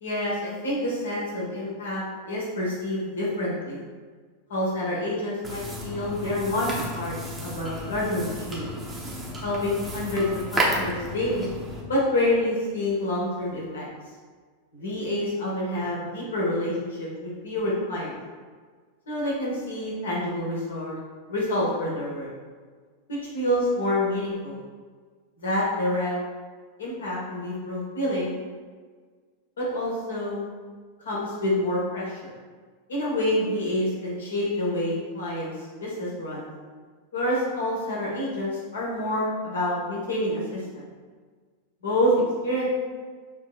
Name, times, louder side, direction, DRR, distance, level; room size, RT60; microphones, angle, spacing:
voice 1, 0.0-3.8 4.5-7.2 7.4-8.7 9.4-11.5 11.9-13.8 14.7-18.2 19.1-21.0 21.3-22.3 23.1-24.6 25.4-26.1 26.8-28.3 29.6-30.4 31.0-32.3 32.9-35.5 35.8-36.5 37.1-40.8 41.8-42.7, left 1 dB, 65° left, -5 dB, 1.3 m, -27 dB
sound 1, 5.4-11.8, right 1 dB, 15° right, 0.9 m, -32 dB
6.2 x 3.1 x 2.4 m, 1.5 s
figure-of-eight pair, 90°, 0 cm